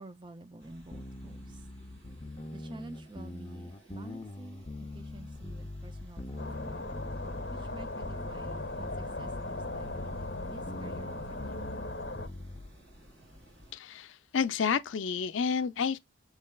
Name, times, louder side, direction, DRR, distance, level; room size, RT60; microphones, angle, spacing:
voice 1, 0.0-1.7 2.5-4.7 4.9-6.9 7.5-11.7, right 2 dB, 25° right, 0.4 m, -50 dB
sound 1, 0.6-13.7, equal, 70° right, 2.0 m, -56 dB
sound 2, 0.9-12.7, left 2 dB, 25° left, 0.6 m, -42 dB
sound 3, 6.4-12.3, left 2 dB, 55° left, 1.0 m, -38 dB
voice 2, 13.7-16.0, left 6 dB, 75° left, 0.4 m, -30 dB
6.5 x 3.2 x 2.3 m
head